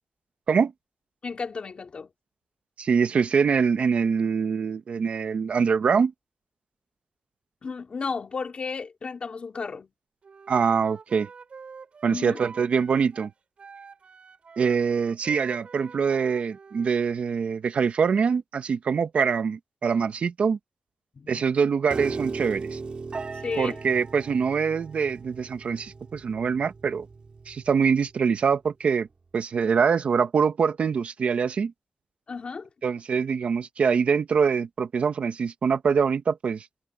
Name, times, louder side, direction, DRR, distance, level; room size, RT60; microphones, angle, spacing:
voice 1, 1.2-2.1 7.6-9.9 12.1-12.4 21.2-21.4 23.4-23.8 32.3-32.7, left 5 dB, 60° left, 2.9 m, -33 dB
voice 2, 2.8-6.1 10.5-11.3 12.0-13.3 14.6-20.6 21.3-22.8 23.6-27.1 27.5-29.1 29.3-31.7 32.8-36.7, right 6 dB, 85° right, 1.3 m, -24 dB
Wind instrument woodwind instrument, 10.2-17.0, right 5 dB, 70° right, 6.5 m, -47 dB
Piano, 21.9-28.1, right 4 dB, 55° right, 3.3 m, -37 dB
wide cardioid pair, 95°, 2 cm